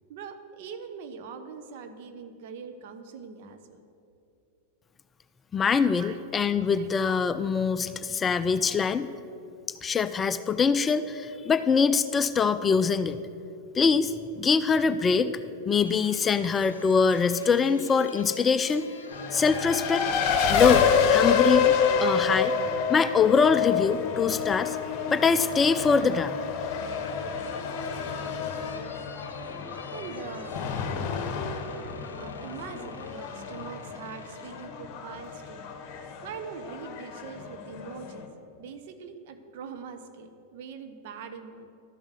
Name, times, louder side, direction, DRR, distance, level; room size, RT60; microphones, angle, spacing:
voice 1, 0.1-3.8 6.0-6.2 6.7-6.9 29.9-30.6 32.1-35.6 35.9-38.3 38.6-41.7, right 6 dB, 50° right, 7 dB, 0.9 m, -42 dB
voice 2, 5.5-9.1 9.8-13.2 13.7-15.3 15.7-18.9 19.3-20.0 20.5-21.7 22.0-22.5 22.9-24.8 25.1-26.4, left 5 dB, 20° left, 12 dB, 0.3 m, -23 dB
sound 1, 15.9-22.8 24.3-25.0 26.2-34.7, left 4 dB, 70° left, 0.8 m, -47 dB
Race car auto racing, 19.1-38.2, left 6 dB, 40° left, 1.0 m, -28 dB
12.5 x 7.2 x 6.5 m, 2.7 s
figure-of-eight pair, 90°, 0 cm